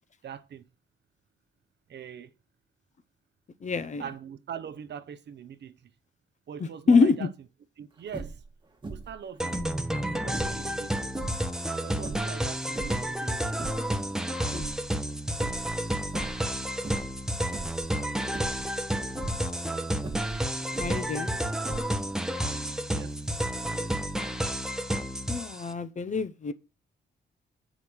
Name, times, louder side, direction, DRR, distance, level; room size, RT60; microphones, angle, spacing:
voice 1, 0.2-0.7 1.9-2.3 4.0-5.9 6.5-7.3 7.8-8.4 8.8-9.5 10.1-11.1 11.8-13.4 22.9-23.2 23.5-23.9, right 8 dB, 60° right, 0.8 m, -42 dB
voice 2, 3.6-4.0 6.6-7.3 14.5-14.7 20.8-21.4 25.3-26.5, left 4 dB, 40° left, 0.7 m, -25 dB
sound 1, 8.1-8.5 8.8-9.2 9.5-10.6 11.1-11.4 12.0-13.1 13.4-14.0 14.3-15.1 15.4-15.8 16.1-16.5 16.8-17.2 17.5-17.9 18.3-18.7 19.1-19.4 20.0-21.1 21.6-22.2, right 4 dB, 25° right, 1.3 m, -40 dB
sound 2, 9.4-25.7, right 1 dB, 5° right, 0.8 m, -31 dB
7.0 x 5.0 x 6.1 m
cardioid pair, 100°, 20 cm